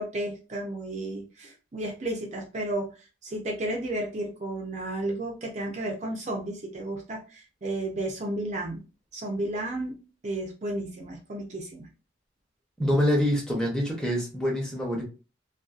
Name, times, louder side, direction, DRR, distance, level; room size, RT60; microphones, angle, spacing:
voice 1, 0.0-2.9 3.2-8.8 9.1-9.9 10.2-11.9, right 1 dB, 35° right, 0 dB, 0.5 m, -32 dB
voice 2, 12.8-15.0, equal, 5° left, -2 dB, 0.8 m, -25 dB
2.6 x 2.3 x 2.3 m, 0.32 s
head